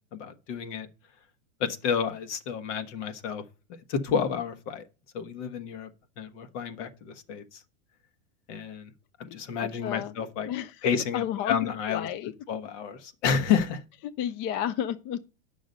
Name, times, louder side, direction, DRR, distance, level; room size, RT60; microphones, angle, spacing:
voice 1, 0.1-0.9 1.6-3.4 3.9-4.8 5.1-5.9 6.2-7.6 8.5-8.9 9.2-10.5 10.8-12.1 12.5-13.8, left 7 dB, 60° left, 1.4 m, -30 dB
voice 2, 9.8-10.8 11.1-12.3 14.2-15.2, left 10 dB, 30° left, 0.4 m, -32 dB
9.4 x 6.2 x 5.3 m
supercardioid pair, 130°, 39 cm